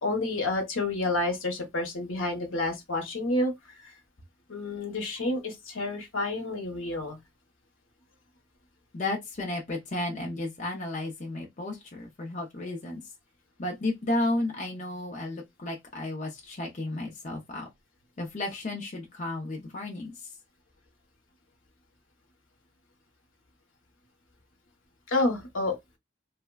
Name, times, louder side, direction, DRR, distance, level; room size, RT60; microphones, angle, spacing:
voice 1, 0.0-3.5 3.8-3.9 4.5-7.2 25.1-25.8, left 2 dB, 75° left, 0.9 m, -29 dB
voice 2, 8.9-13.0 13.6-17.7 18.2-20.1, left 2 dB, 35° left, 0.5 m, -33 dB
3.2 x 2.1 x 2.3 m
head